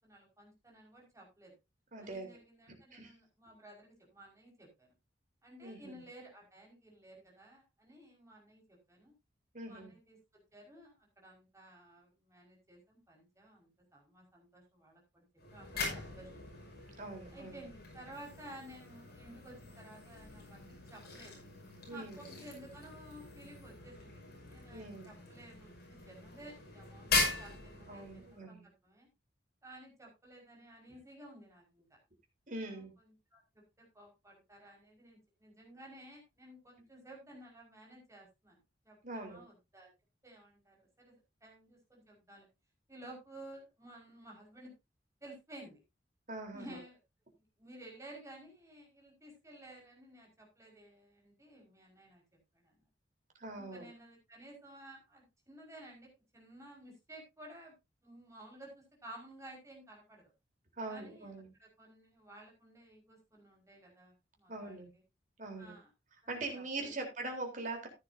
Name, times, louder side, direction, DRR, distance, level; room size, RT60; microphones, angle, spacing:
voice 1, 0.0-1.6 2.0-4.9 5.4-9.1 9.6-10.2 10.5-15.2 15.5-16.3 17.3-21.4 21.9-29.1 29.6-31.9 32.6-38.6 38.8-39.9 40.2-41.1 41.4-42.5 42.9-44.7 45.2-45.8 46.5-47.0 47.6-52.2 52.5-52.7 53.6-57.7 58.0-60.3 60.9-61.3 61.6-65.0 65.6-65.9 66.2-67.0, right 1 dB, 15° right, -1 dB, 5.2 m, -54 dB
voice 2, 1.9-2.3 2.9-3.1 5.6-6.0 9.5-9.9 17.0-17.6 21.9-22.3 24.7-25.2 27.9-28.7 32.5-32.9 39.0-39.4 46.3-46.8 53.4-53.8 60.8-61.5 64.5-64.9 65.4-65.7 66.3-67.9, right 2 dB, 45° right, 3 dB, 3.8 m, -42 dB
sound 1, 15.4-28.4, left 3 dB, 55° left, 5.5 m, -41 dB
14.5 x 9.7 x 2.7 m, 0.24 s
head